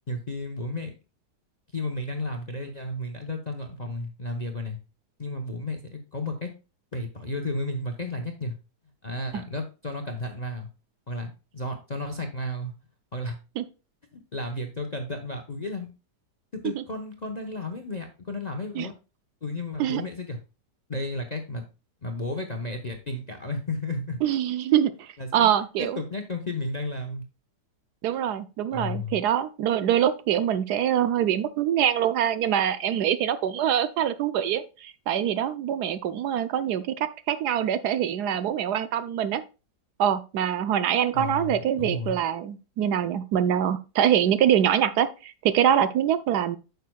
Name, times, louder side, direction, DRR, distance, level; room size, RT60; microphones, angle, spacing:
voice 1, 0.1-0.9 1.7-4.8 5.2-6.5 6.9-8.5 9.0-10.7 11.1-12.7 13.1-13.4 14.1-15.9 16.5-18.9 19.4-20.4 20.9-21.6 22.0-24.2 25.2-25.5 25.8-27.3 28.1-28.3 28.7-29.2 41.1-42.2, left 2 dB, 40° left, 5 dB, 0.6 m, -33 dB
voice 2, 24.2-26.0 28.0-39.4 40.0-46.6, right 10 dB, 75° right, 12 dB, 1.1 m, -24 dB
9.1 x 6.6 x 2.3 m, 0.30 s
omnidirectional pair, 1.8 m